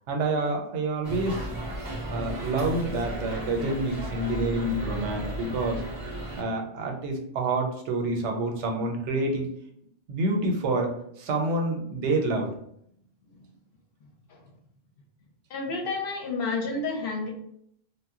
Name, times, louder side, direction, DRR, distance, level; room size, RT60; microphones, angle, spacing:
voice 1, 0.1-1.5 2.1-5.8 6.4-9.5 10.1-12.5, right 2 dB, 85° right, 2 dB, 0.9 m, -28 dB
sound 1, 1.0-6.4, right 1 dB, 10° left, 0.7 m, -34 dB
voice 2, 15.5-17.3, left 3 dB, 60° left, 1 dB, 0.7 m, -30 dB
2.1 x 2.0 x 3.5 m, 0.70 s
omnidirectional pair, 1.2 m